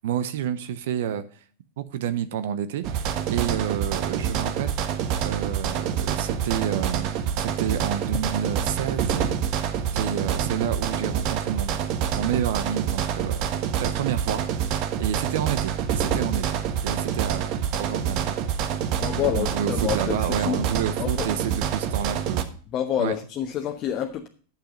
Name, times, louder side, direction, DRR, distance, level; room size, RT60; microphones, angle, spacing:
voice 1, 0.0-1.4 1.8-9.6 9.9-11.8 12.1-13.4 13.8-17.5 17.8-18.4 19.2-22.6 23.0-23.1, right 9 dB, 70° right, 12 dB, 0.8 m, -30 dB
sound 1, 2.8-22.4, right 8 dB, 50° right, 1.2 m, -27 dB
voice 2, 19.0-20.6 21.0-21.3 22.7-24.3, left 9 dB, 40° left, 2 dB, 1.1 m, -28 dB
9.0 x 7.6 x 5.2 m, 0.42 s
hypercardioid pair, 105°, 0 cm